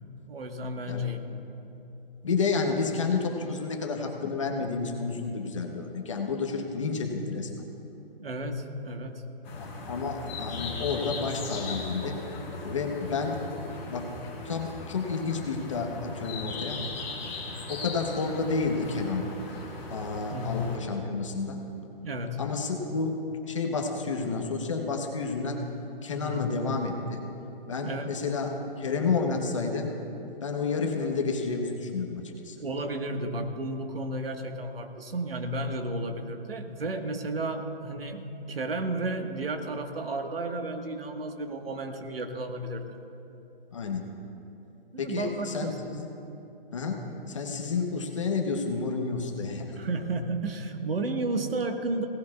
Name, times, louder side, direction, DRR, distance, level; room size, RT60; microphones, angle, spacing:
voice 1, 0.3-1.2 8.2-9.2 20.3-20.6 22.0-22.4 26.2-26.4 27.8-28.1 32.6-43.0 44.9-45.8 47.5-47.7 49.7-52.1, right 2 dB, 75° right, 5 dB, 1.5 m, -33 dB
voice 2, 2.2-7.6 9.6-12.2 12.6-13.4 13.9-14.1 14.4-16.8 17.2-17.4 17.7-19.3 19.9-21.6 22.4-23.2 23.5-25.6 26.0-27.2 27.7-28.5 28.8-29.9 30.4-32.6 43.7-44.0 45.0-46.1 46.7-49.8, left 4 dB, 35° left, 2 dB, 1.1 m, -30 dB
sound 1, 9.4-20.8, left 3 dB, 15° left, 1.5 m, -38 dB
21.0 x 18.0 x 2.4 m, 2.9 s
hypercardioid pair, 175°, 29 cm